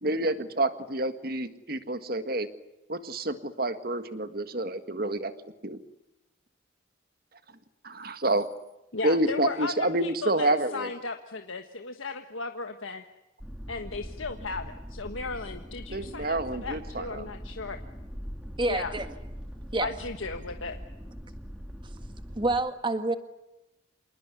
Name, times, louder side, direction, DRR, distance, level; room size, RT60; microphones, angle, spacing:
voice 1, 0.0-2.5 2.9-5.3 5.6-5.8 7.8-8.5 9.0-10.9 15.9-17.3, right 2 dB, 50° right, 10 dB, 1.8 m, -28 dB
voice 2, 8.9-13.0 13.7-17.8 18.7-18.9 19.8-20.8, left 4 dB, 85° left, 6 dB, 1.5 m, -36 dB
sound 1, 13.4-22.6, equal, 5° right, 2.2 m, -41 dB
voice 3, 18.6-19.1 19.7-19.9 22.4-23.2, right 2 dB, 25° right, 9 dB, 1.7 m, -27 dB
27.5 x 19.5 x 9.8 m, 0.94 s
head